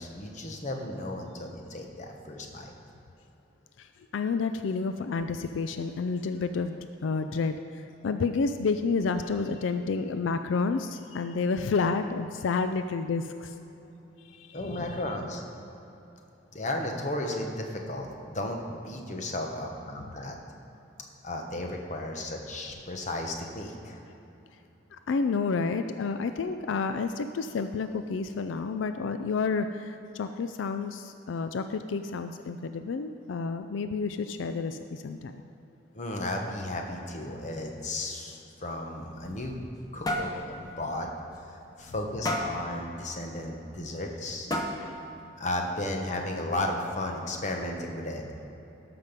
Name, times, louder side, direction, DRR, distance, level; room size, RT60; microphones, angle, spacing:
voice 1, 0.0-2.7 14.5-15.4 16.5-20.4 21.2-24.0 35.9-39.6 39.9-41.1 41.8-44.5 45.4-48.2, left 1 dB, 40° left, 2 dB, 1.1 m, -34 dB
voice 2, 3.8-13.5 14.3-14.9 24.9-35.4 44.8-45.0, left 4 dB, 90° left, 9 dB, 0.4 m, -30 dB
sound 1, 39.0-39.8 40.1-40.4 40.8-40.9 41.3-41.4 42.2-42.6 43.8-43.9 44.5-45.0, left 1 dB, 20° left, 0.8 m, -31 dB
13.0 x 6.0 x 5.2 m, 3.0 s
head